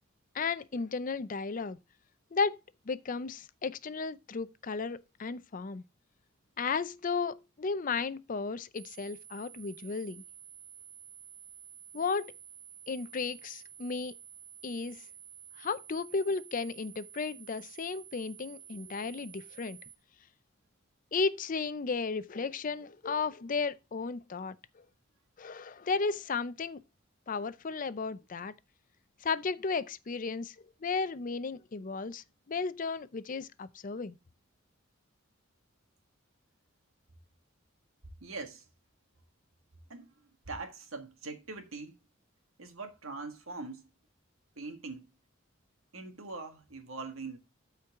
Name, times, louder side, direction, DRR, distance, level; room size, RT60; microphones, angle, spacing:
voice 1, 0.3-1.8 2.3-2.6 2.9-5.8 6.6-10.2 11.9-12.3 12.9-14.1 14.6-15.0 15.6-19.8 21.1-24.6 25.4-26.8 27.3-28.5 29.2-30.5 30.8-34.2, left 4 dB, 40° left, 0.5 m, -34 dB
sound 1, 8.7-20.0, right 9 dB, 25° right, 1.1 m, -51 dB
voice 2, 38.2-38.7 39.9-40.1 40.5-42.0 42.6-43.9 44.6-45.1 45.9-47.4, right 3 dB, 80° right, 1.8 m, -42 dB
13.0 x 4.6 x 3.6 m
head